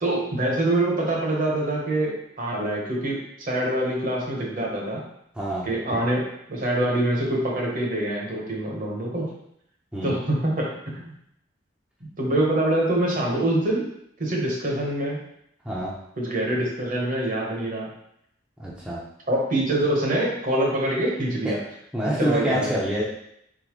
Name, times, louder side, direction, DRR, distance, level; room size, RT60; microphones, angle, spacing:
voice 1, 0.0-5.0 5.6-9.3 10.0-11.1 12.2-13.9 14.2-15.2 16.2-17.9 19.3-21.6 22.2-22.7, right 1 dB, 45° right, -2 dB, 1.1 m, -25 dB
voice 2, 5.3-6.0 9.9-10.2 15.6-15.9 18.6-19.0 21.4-21.5 21.9-23.0, right 1 dB, 5° right, -7 dB, 0.7 m, -26 dB
4.3 x 3.9 x 3.1 m, 0.74 s
head